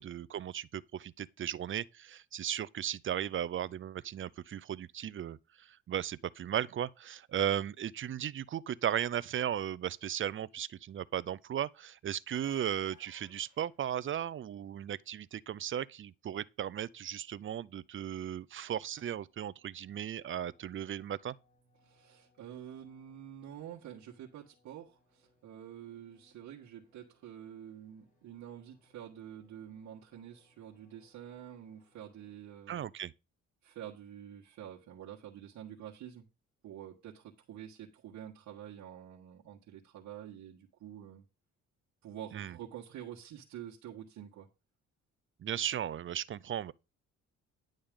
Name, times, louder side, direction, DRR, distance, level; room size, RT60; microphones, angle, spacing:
voice 1, 0.0-21.4 32.7-33.1 42.3-42.5 45.4-46.7, right 10 dB, 40° right, 0.5 m, -36 dB
sound 1, 12.2-14.4 19.9-20.0 21.8-21.9, left 2 dB, 70° left, 6.4 m, -61 dB
sound 2, 17.8-32.3, left 2 dB, 25° left, 3.3 m, -73 dB
voice 2, 21.8-32.8 33.6-36.3 36.6-41.2 42.0-44.5, right 10 dB, 75° right, 1.4 m, -48 dB
10.5 x 6.4 x 3.7 m
cardioid pair, 90°, 30 cm